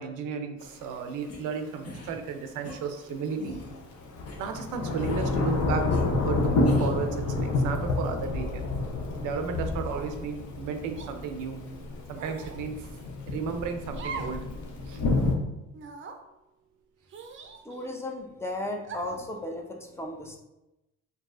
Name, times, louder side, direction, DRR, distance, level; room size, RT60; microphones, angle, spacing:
voice 1, 0.0-3.6 4.4-5.9 6.2-8.7 9.2-11.6 12.1-12.8 13.3-14.4 14.9-15.0, right 5 dB, 90° right, 6 dB, 0.5 m, -33 dB
Thunder / Rain, 0.6-0.7 3.6-15.4, left 2 dB, 70° left, 0.7 m, -29 dB
sound 1, 1.3-1.4 1.8-2.1 2.6-2.8 3.4-3.7 4.3-4.4 5.0-5.4 5.9-6.0 6.7-7.0, left 2 dB, 55° left, 1.0 m, -40 dB
sound 2, 9.9-10.3 11.0-11.1 12.2-12.6 13.9-14.4 14.8-14.9 15.7-16.2 17.1-18.0 18.8-19.3, right 5 dB, 40° right, 0.5 m, -41 dB
voice 2, 17.6-20.4, left 1 dB, 10° left, 1 dB, 0.6 m, -35 dB
4.6 x 2.7 x 2.4 m, 0.95 s
cardioid pair, 90°, 30 cm